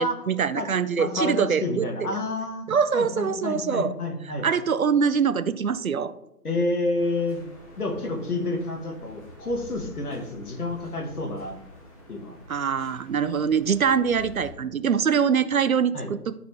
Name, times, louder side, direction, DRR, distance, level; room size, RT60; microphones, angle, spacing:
voice 1, 0.0-2.1 2.7-3.9 4.4-6.1 12.5-16.3, right 6 dB, 60° right, 14 dB, 0.5 m, -24 dB
voice 2, 1.0-2.7 2.9-4.5 6.4-7.4 7.8-11.6 12.1-12.4 15.9-16.1, left 2 dB, 65° left, 3 dB, 1.9 m, -29 dB
sound 1, 7.0-14.5, left 1 dB, 20° left, 1.9 m, -47 dB
11.5 x 4.3 x 3.4 m, 0.85 s
figure-of-eight pair, 165°, 47 cm